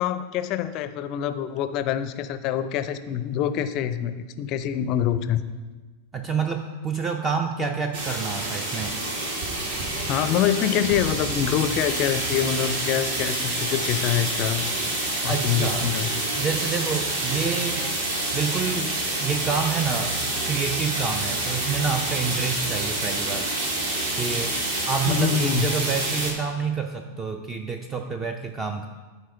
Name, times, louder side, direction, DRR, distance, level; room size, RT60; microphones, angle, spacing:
voice 1, 0.0-5.4 10.1-14.7 15.2-16.1 25.1-25.7, left 10 dB, 40° left, 13 dB, 0.4 m, -25 dB
voice 2, 6.1-9.0 15.3-15.9 16.4-17.9 18.3-20.2 20.5-23.5 24.1-24.6 24.9-28.9, right 5 dB, 20° right, 6 dB, 0.5 m, -28 dB
sound 1, 7.9-26.3, right 2 dB, 55° right, 1.7 m, -27 dB
12.0 x 4.7 x 3.4 m, 1.3 s
figure-of-eight pair, 90°, 0 cm